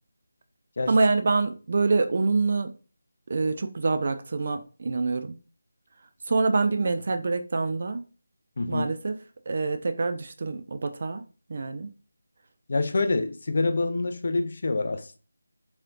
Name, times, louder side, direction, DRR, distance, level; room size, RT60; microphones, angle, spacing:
voice 1, 0.9-2.7 3.3-5.3 6.3-8.0 8.7-9.2 9.5-11.2 11.5-11.9, right 3 dB, 45° right, 0.4 m, -25 dB
voice 2, 8.6-8.9 12.7-15.2, left 3 dB, 50° left, 0.4 m, -26 dB
3.2 x 2.8 x 2.4 m
figure-of-eight pair, 160°, 0 cm